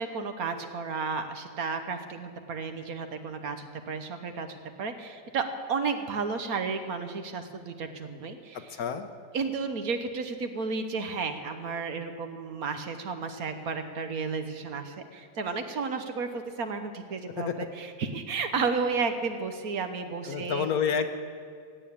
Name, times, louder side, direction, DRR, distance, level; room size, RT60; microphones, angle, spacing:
voice 1, 0.0-8.7 9.3-20.7, right 4 dB, 60° right, 7 dB, 1.3 m, -33 dB
voice 2, 8.7-9.1 17.3-17.5 20.3-21.1, left 7 dB, 65° left, 8 dB, 1.2 m, -28 dB
16.0 x 8.8 x 8.6 m, 2.2 s
omnidirectional pair, 1.8 m